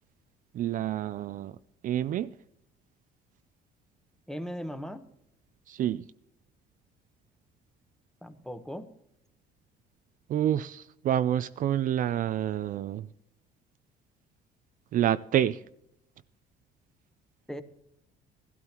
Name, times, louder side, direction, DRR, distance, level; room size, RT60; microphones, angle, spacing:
voice 1, 0.5-1.5 1.8-2.3 5.7-6.0 10.3-13.1 14.9-15.6, right 11 dB, 55° right, 0.4 m, -28 dB
voice 2, 4.3-5.0 8.2-8.9 17.5-17.6, equal, 5° left, 1.0 m, -38 dB
16.0 x 12.5 x 2.9 m
cardioid pair, 110°, 17 cm